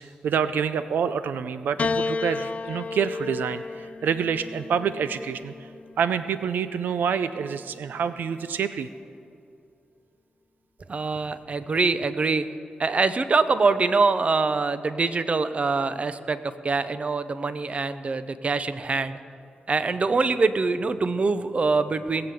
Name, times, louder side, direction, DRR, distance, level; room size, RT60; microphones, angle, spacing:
voice 1, 0.0-5.5 6.0-8.9, right 7 dB, 90° right, 12 dB, 0.5 m, -27 dB
Piano, 1.8-6.3 7.3-8.1, left 4 dB, 45° left, 0.5 m, -32 dB
voice 2, 10.9-12.4 12.8-16.4 16.6-19.1 19.7-22.3, right 4 dB, 45° right, 12 dB, 0.7 m, -24 dB
19.0 x 7.8 x 6.9 m, 2.5 s
cardioid pair, 80°, 3 cm